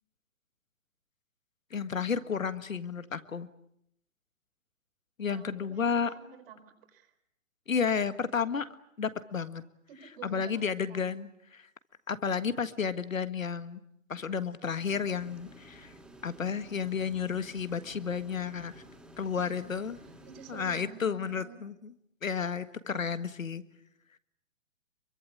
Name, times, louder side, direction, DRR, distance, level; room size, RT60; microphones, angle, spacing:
voice 1, 1.7-3.5 5.2-6.1 7.7-8.7 9.0-9.6 10.2-11.7 12.1-13.8 14.1-15.9 16.2-18.8 19.2-20.0 20.5-21.9 22.2-23.6, left 6 dB, 85° left, 12 dB, 1.7 m, -32 dB
voice 2, 5.3-7.2 9.9-11.1 19.3-19.7 20.0-21.6, right 6 dB, 45° right, 7 dB, 4.6 m, -51 dB
sound 1, 14.8-21.5, right 1 dB, ahead, 3.0 m, -53 dB
25.5 x 23.5 x 8.5 m, 0.75 s
hypercardioid pair, 135°, 39 cm